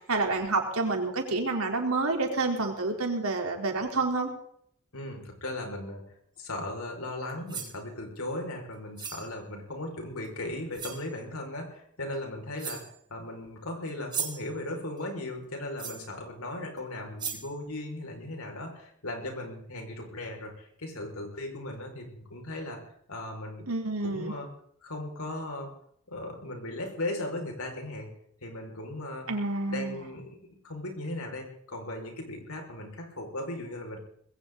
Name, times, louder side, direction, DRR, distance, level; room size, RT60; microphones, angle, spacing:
voice 1, 0.1-4.3 23.7-24.3 29.3-30.0, right 3 dB, 85° right, 2 dB, 3.8 m, -28 dB
voice 2, 4.9-6.0 6.4-12.8 13.1-22.8 23.1-23.7 24.0-24.5 24.8-25.7 26.1-28.1 28.4-29.3 29.7-34.0, left 1 dB, 90° left, 2 dB, 5.5 m, -37 dB
sound 1, 7.3-7.8 9.0-9.3 10.2-10.3 10.7-11.1 12.1-12.2 12.6-13.0 13.9-14.5 15.8-16.1 16.8-16.9 17.2-17.5, right 7 dB, 20° right, 2.2 m, -37 dB
20.5 x 17.0 x 4.0 m, 0.67 s
head